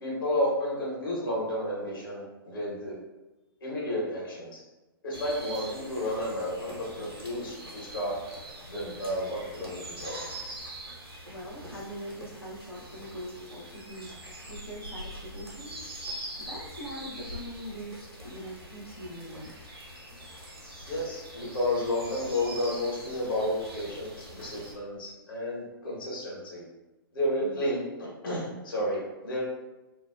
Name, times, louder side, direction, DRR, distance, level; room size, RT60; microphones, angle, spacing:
voice 1, 0.0-3.0 3.6-4.6 5.0-8.1 8.7-10.2 20.9-26.6 27.1-29.4, left 1 dB, 65° left, -4 dB, 1.1 m, -31 dB
sound 1, 5.1-24.7, right 1 dB, 90° right, 0.8 m, -43 dB
voice 2, 11.3-14.1 14.4-15.8 16.4-19.5, equal, 85° left, -4 dB, 0.7 m, -42 dB
2.7 x 2.1 x 2.4 m, 1.1 s
figure-of-eight pair, 120°, 12 cm